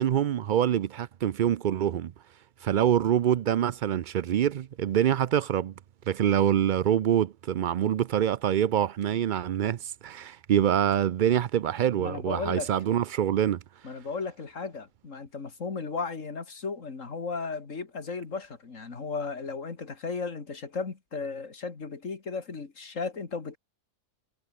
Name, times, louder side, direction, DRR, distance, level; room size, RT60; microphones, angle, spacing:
voice 1, 0.0-2.1 2.6-5.7 6.1-13.6, right 10 dB, 70° right, 0.4 m, -25 dB
voice 2, 12.0-12.7 13.8-23.6, left 4 dB, 70° left, 2.7 m, -35 dB
omnidirectional pair, 1.4 m